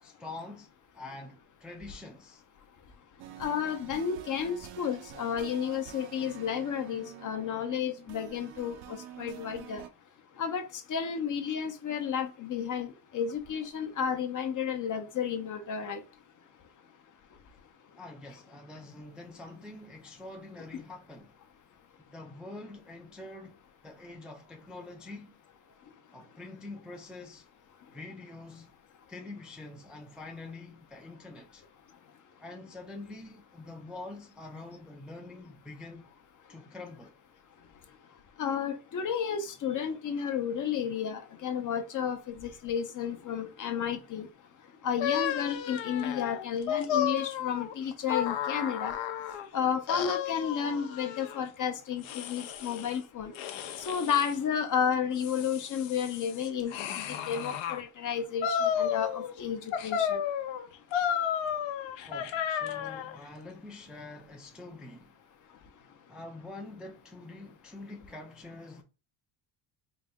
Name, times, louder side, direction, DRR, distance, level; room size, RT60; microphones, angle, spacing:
voice 1, 0.0-2.4 18.0-21.4 22.0-25.4 26.1-27.5 27.9-28.7 29.1-31.6 32.4-36.1 36.5-37.1 62.1-65.1 66.1-68.8, left 2 dB, ahead, 0.4 m, -45 dB
sound 1, 3.2-9.9, right 10 dB, 70° right, 0.6 m, -48 dB
voice 2, 3.4-9.8 10.4-16.0 38.4-44.3 44.8-49.0 49.5-53.3 53.8-60.2, left 7 dB, 40° left, 0.6 m, -32 dB
sound 2, 45.0-49.5 49.9-51.4 52.0-53.0 53.3-54.4 54.9-57.8 58.4-59.4 59.7-63.2, left 9 dB, 70° left, 0.7 m, -33 dB
4.0 x 2.2 x 3.5 m
cardioid pair, 115°, 48 cm